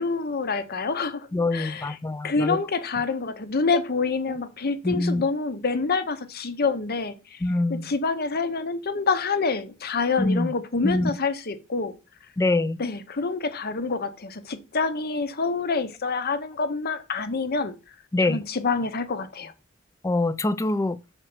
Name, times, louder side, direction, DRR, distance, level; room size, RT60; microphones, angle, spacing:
voice 1, 0.0-2.0 2.2-7.4 7.7-12.0 12.8-17.7 18.3-19.5, left 4 dB, 50° left, 0.9 m, -27 dB
voice 2, 1.3-2.6 4.3-4.4 4.8-5.2 7.4-7.9 10.2-10.5 10.8-11.1 12.4-12.8 18.1-18.4 20.0-21.0, left 2 dB, 15° left, 0.4 m, -24 dB
6.6 x 4.5 x 6.0 m
head